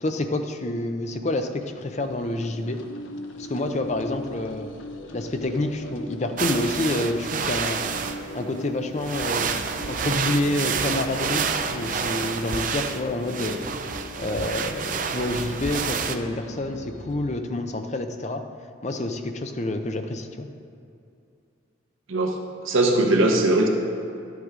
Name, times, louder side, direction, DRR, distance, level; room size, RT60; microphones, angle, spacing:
voice 1, 0.0-2.8 3.4-4.7 5.1-7.8 8.3-9.5 9.9-13.6 14.2-18.4 18.8-20.5, left 2 dB, 35° left, 6 dB, 0.5 m, -28 dB
sound 1, 1.4-17.4, left 1 dB, 70° left, 0.7 m, -40 dB
sound 2, 6.4-8.4 8.9-16.2, right 6 dB, 40° right, 0.4 m, -29 dB
voice 2, 22.6-23.7, right 2 dB, 85° right, 2 dB, 1.0 m, -20 dB
11.5 x 8.0 x 3.7 m, 2.5 s
head